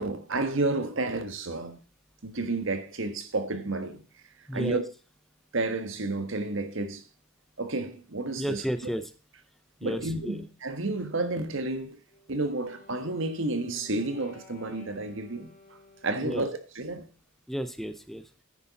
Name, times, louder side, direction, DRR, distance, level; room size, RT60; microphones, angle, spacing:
voice 1, 0.0-1.8 2.2-4.0 4.5-4.8 5.5-7.0 7.6-8.6 9.8-12.0 12.3-15.5 16.0-17.1, right 2 dB, 65° right, 1.4 m, -31 dB
voice 2, 4.5-4.8 8.4-9.1 9.8-10.4 16.2-16.4 17.5-18.4, equal, ahead, 0.6 m, -33 dB
Wind instrument woodwind instrument, 12.1-16.6, left 1 dB, 40° left, 2.8 m, -54 dB
10.0 x 9.9 x 4.1 m
head